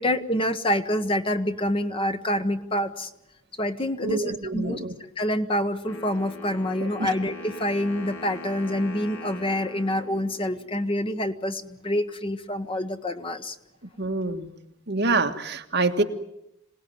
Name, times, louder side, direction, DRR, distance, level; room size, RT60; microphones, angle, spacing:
voice 1, 0.0-3.1 3.6-4.8 5.2-13.6, left 1 dB, 25° left, 8 dB, 1.0 m, -27 dB
voice 2, 4.0-4.9 6.8-7.1 14.0-14.5 14.9-16.0, right 3 dB, 50° right, 4 dB, 1.8 m, -26 dB
Wind instrument woodwind instrument, 5.8-10.9, left 2 dB, 70° left, 3.1 m, -41 dB
26.5 x 18.5 x 9.3 m, 0.82 s
head